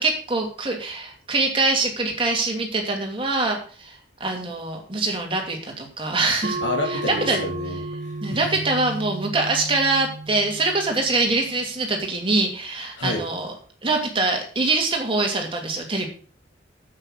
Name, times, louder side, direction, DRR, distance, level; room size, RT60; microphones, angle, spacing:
voice 1, 0.0-6.6 6.9-7.4 8.2-13.5 13.8-16.1, right 3 dB, 30° right, 2 dB, 2.8 m, -24 dB
sound 1, 6.4-11.5, right 3 dB, 50° right, 0.8 m, -33 dB
voice 2, 6.6-8.4 13.0-13.2, left 2 dB, 70° left, 0 dB, 2.2 m, -29 dB
9.0 x 8.1 x 6.6 m, 0.42 s
head